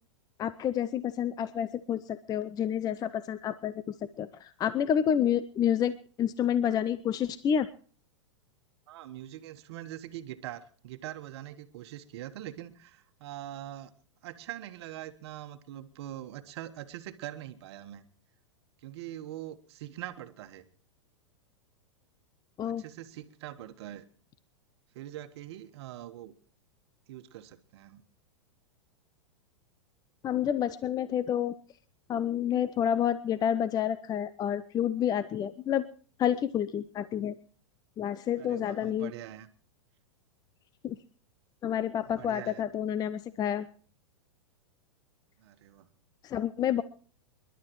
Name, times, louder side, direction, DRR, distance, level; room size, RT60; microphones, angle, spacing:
voice 1, 0.4-3.8 4.2-5.9 6.2-7.7 22.6-22.8 30.2-31.5 32.1-35.8 36.2-37.3 38.0-39.1 40.8-41.0 41.6-43.7 46.2-46.8, left 9 dB, 25° left, 15 dB, 0.6 m, -29 dB
voice 2, 8.9-13.9 14.2-18.0 18.8-20.6 22.6-24.0 24.9-26.3 27.1-28.0 38.3-39.5 42.0-42.6 45.4-45.9, right 13 dB, 60° right, 9 dB, 1.4 m, -43 dB
28.0 x 11.5 x 3.1 m, 0.41 s
hypercardioid pair, 115°, 15 cm